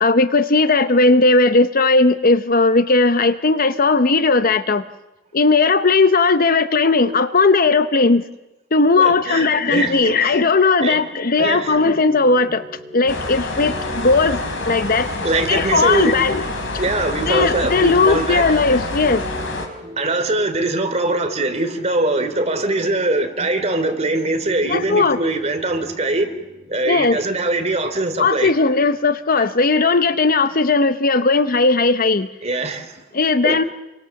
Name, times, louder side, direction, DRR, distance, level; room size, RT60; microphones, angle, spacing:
voice 1, 0.0-4.8 5.3-8.2 8.7-12.6 12.9-15.1 15.5-16.4 17.3-19.2 24.7-25.2 26.8-27.2 28.2-32.3 33.1-33.6, left 3 dB, 45° left, 11 dB, 0.9 m, -17 dB
voice 2, 9.0-10.4 10.8-11.0 11.4-11.8 15.2-16.2 16.7-18.5 20.0-26.3 26.7-28.5 32.4-33.0 33.4-33.6, right 2 dB, 35° right, 6 dB, 3.1 m, -22 dB
sound 1, 11.4-31.0, right 1 dB, 15° right, 4.3 m, -41 dB
sound 2, 13.1-19.7, left 2 dB, 65° left, 4.5 m, -27 dB
29.0 x 24.0 x 7.1 m, 1.0 s
head